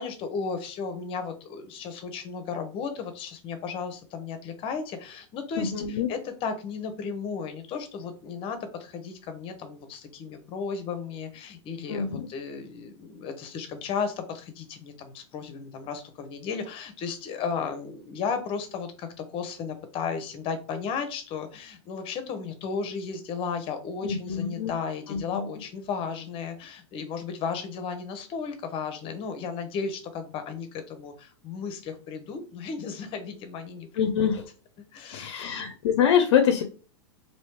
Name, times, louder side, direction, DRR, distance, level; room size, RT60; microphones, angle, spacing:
voice 1, 0.0-33.9 34.2-34.3 34.9-35.6, left 5 dB, 35° left, 8 dB, 0.8 m, -34 dB
voice 2, 5.6-6.1 11.9-12.3 24.0-24.7 25.1-25.5 34.0-34.4 35.1-36.6, left 8 dB, 65° left, 7 dB, 0.6 m, -25 dB
3.1 x 2.7 x 3.1 m, 0.37 s
hypercardioid pair, 115°, 15 cm